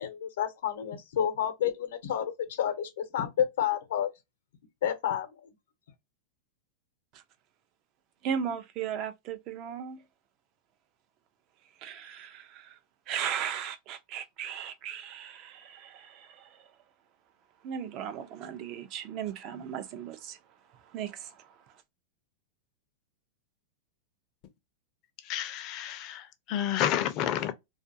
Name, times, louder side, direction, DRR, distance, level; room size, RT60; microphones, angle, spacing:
voice 1, 0.0-4.1 4.8-5.5, left 9 dB, 80° left, 0.8 m, -30 dB
voice 2, 8.2-10.0 11.8-12.8 13.1-16.7 17.6-20.4 20.7-21.8, right 8 dB, 35° right, 0.4 m, -37 dB
voice 3, 25.2-27.5, left 11 dB, 40° left, 0.5 m, -30 dB
2.4 x 2.3 x 2.6 m
supercardioid pair, 150°, 0 cm